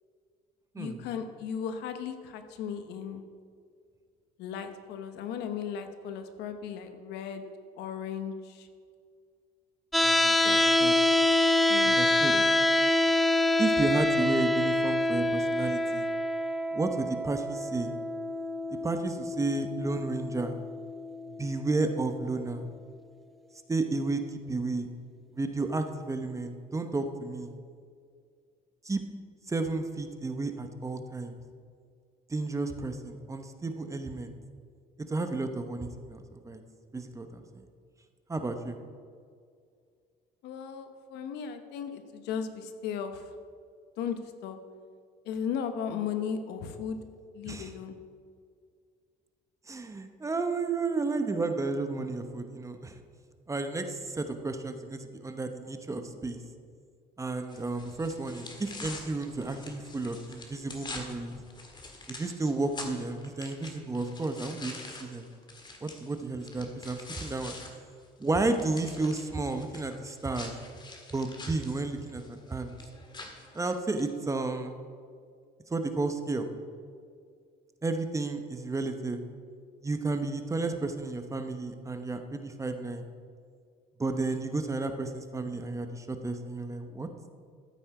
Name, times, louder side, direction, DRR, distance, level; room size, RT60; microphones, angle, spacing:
voice 1, 0.8-3.2 4.4-7.5 7.8-8.7 10.4-10.6 11.7-12.0 12.3-12.5 40.4-43.3 44.0-44.6 45.2-47.0 47.3-48.0, left 7 dB, 85° left, 8 dB, 1.0 m, -36 dB
sound 1, 9.9-21.9, left 1 dB, ahead, 0.5 m, -26 dB
voice 2, 10.0-11.2 11.8-12.4 13.6-16.1 16.7-17.9 18.8-20.6 21.2-22.7 23.7-24.9 25.3-27.5 28.8-29.0 29.5-31.4 32.3-34.3 35.1-36.6 36.9-37.6 38.3-38.8 47.5-47.7 49.7-53.0 53.5-56.4 57.2-61.4 62.1-65.3 65.8-67.6 68.2-70.5 71.1-72.7 73.5-74.8 75.7-76.5 77.8-79.2 79.8-83.0 84.0-87.1, right 3 dB, 20° right, 7 dB, 0.9 m, -32 dB
sound 2, 57.5-67.7 68.0-74.1, left 2 dB, 25° left, 1.8 m, -46 dB
13.5 x 8.5 x 4.8 m, 2.2 s
cardioid pair, 110°, 17 cm